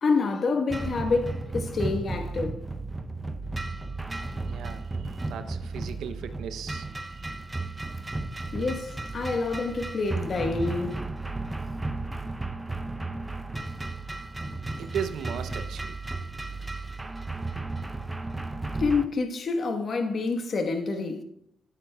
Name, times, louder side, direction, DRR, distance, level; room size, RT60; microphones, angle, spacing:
voice 1, 0.0-2.6 8.5-10.9 18.8-21.2, left 4 dB, 45° left, 1.1 m, -27 dB
sound 1, 0.7-19.1, right 2 dB, 15° right, 0.6 m, -34 dB
voice 2, 4.4-7.3 13.1-13.3 14.8-16.0, right 8 dB, 75° right, 0.6 m, -37 dB
12.5 x 9.0 x 2.2 m
cardioid pair, 90°, 0 cm